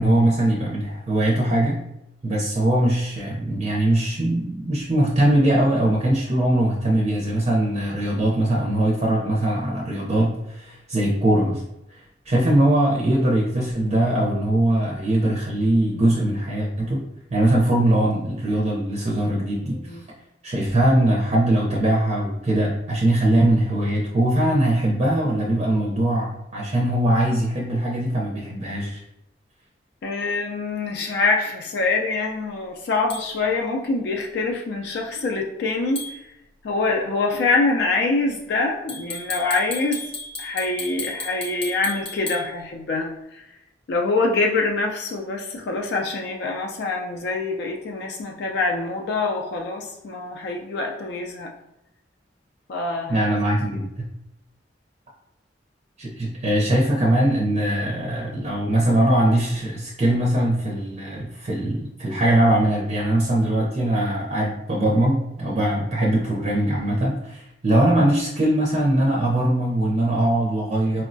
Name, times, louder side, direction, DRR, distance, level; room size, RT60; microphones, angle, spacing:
voice 1, 0.0-1.8 2.2-11.6 11.9-17.0 17.3-20.0 20.4-29.0 53.1-54.1 56.0-71.0, right 1 dB, 35° right, -3 dB, 0.5 m, -21 dB
voice 2, 30.0-36.3 36.6-40.1 40.4-43.5 43.9-51.5 52.7-53.3, left 3 dB, 60° left, 0 dB, 0.4 m, -25 dB
sound 1, 33.1-33.2 36.0-36.2 38.9-42.4, left 2 dB, 30° left, 0.7 m, -33 dB
4.4 x 2.1 x 2.5 m, 0.86 s
head